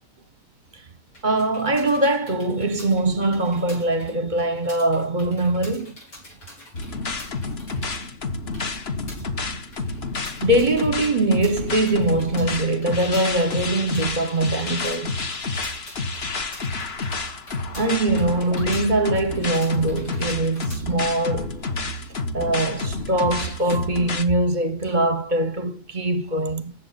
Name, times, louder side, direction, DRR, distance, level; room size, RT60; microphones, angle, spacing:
sound 1, 1.1-20.8, left 1 dB, 80° left, 6.4 m, -46 dB
voice 1, 1.2-6.0 10.4-15.2 17.7-21.6 22.3-26.7, right 2 dB, 35° right, 0.9 m, -22 dB
sound 2, 6.7-24.2, left 3 dB, 40° left, 1.5 m, -29 dB
15.0 x 8.3 x 4.1 m
omnidirectional pair, 1.8 m